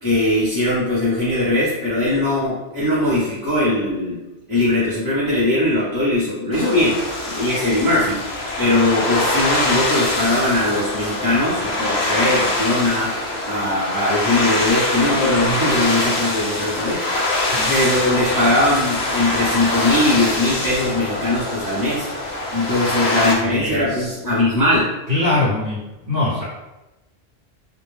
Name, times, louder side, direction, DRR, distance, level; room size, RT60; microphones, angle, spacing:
voice 1, 0.0-4.2 4.5-7.0 7.3-13.2 13.4-17.0 17.7-22.1 22.5-24.9, left 1 dB, 20° left, -12 dB, 0.7 m, -20 dB
sound 1, 6.5-23.4, left 2 dB, 65° left, 0.8 m, -23 dB
voice 2, 22.8-24.1 25.1-26.4, left 2 dB, 55° right, -9 dB, 0.8 m, -23 dB
2.2 x 2.1 x 3.1 m, 1.0 s
omnidirectional pair, 1.2 m